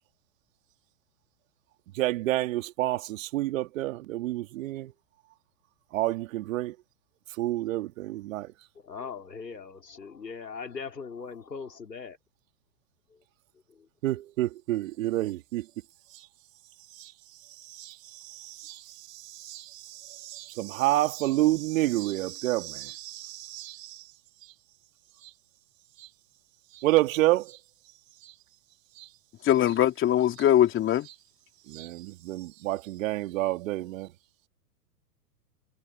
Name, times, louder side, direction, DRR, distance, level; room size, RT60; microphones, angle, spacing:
voice 1, 1.9-4.9 5.9-6.8 7.4-8.5 14.0-15.7 16.1-16.3 16.9-17.1 17.6-24.1 25.2-25.3 26.0-26.1 26.7-27.6 28.2-28.3 29.0-29.1 31.7-34.1, right 16 dB, 55° right, 2.4 m, -29 dB
voice 2, 8.8-12.2, left 5 dB, 90° left, 4.1 m, -40 dB
voice 3, 29.4-31.1, left 11 dB, 25° left, 3.0 m, -22 dB
hypercardioid pair, 115°, 48 cm